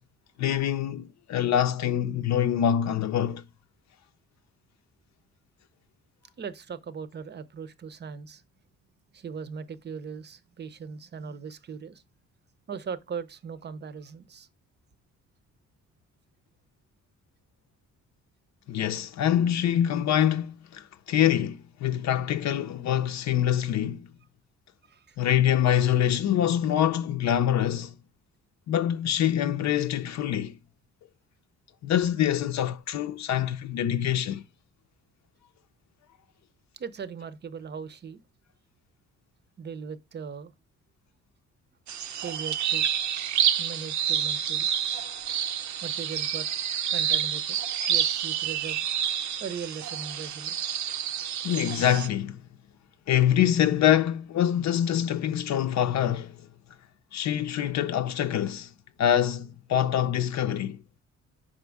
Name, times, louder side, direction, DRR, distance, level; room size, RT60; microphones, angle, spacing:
voice 1, 0.4-3.4 18.7-24.1 25.2-27.9 28.7-30.5 31.8-34.4 51.4-52.4 53.1-56.3 57.1-58.7 59.0-60.8, left 10 dB, 65° left, 0.6 m, -25 dB
voice 2, 6.4-8.4 9.1-12.0 12.7-14.5 24.9-25.2 36.8-38.2 39.6-40.5 42.2-42.9 43.6-44.7 45.8-46.5 46.9-47.6 47.9-48.8 49.4-50.8, right 6 dB, 35° right, 0.7 m, -39 dB
sound 1, 41.9-52.1, right 9 dB, 70° right, 0.7 m, -28 dB
5.3 x 5.1 x 3.4 m
cardioid pair, 90°, 30 cm